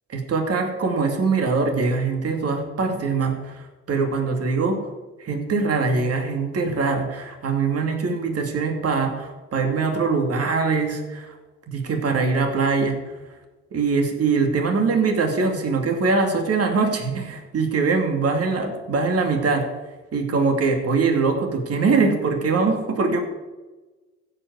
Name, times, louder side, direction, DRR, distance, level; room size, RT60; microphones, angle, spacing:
voice 1, 0.1-4.8 5.2-11.3 11.7-13.0 13.7-19.7 20.1-23.2, right 4 dB, 55° right, 3 dB, 2.5 m, -22 dB
15.0 x 5.6 x 8.1 m, 1.2 s
cardioid pair, 90°, 30 cm